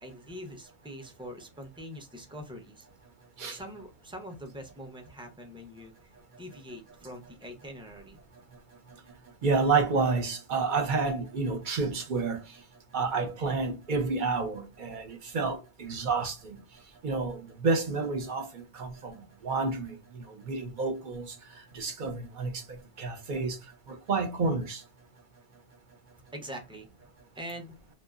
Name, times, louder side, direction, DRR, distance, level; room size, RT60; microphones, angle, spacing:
voice 1, 0.0-2.9 3.5-6.1 6.4-8.2 26.3-26.9 27.3-27.8, equal, 10° right, 0.3 m, -43 dB
voice 2, 9.4-12.4 12.9-16.6 17.0-19.1 19.4-21.3 21.7-22.5 23.0-23.6 23.9-24.8, right 4 dB, 55° right, 0.7 m, -29 dB
2.9 x 2.2 x 2.3 m
omnidirectional pair, 1.1 m